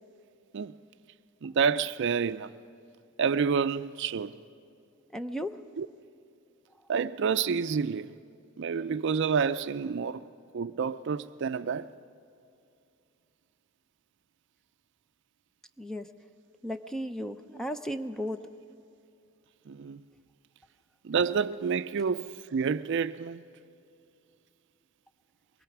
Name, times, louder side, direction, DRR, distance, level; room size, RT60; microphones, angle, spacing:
voice 1, 1.4-2.5 3.2-4.4 5.8-5.9 6.9-8.1 8.6-10.3 10.5-11.9 19.7-20.0 21.0-23.4, right 6 dB, 60° right, 0.4 m, -29 dB
voice 2, 5.1-5.6 15.8-16.1 16.6-18.4, equal, 5° left, 0.5 m, -35 dB
23.0 x 21.0 x 6.0 m
head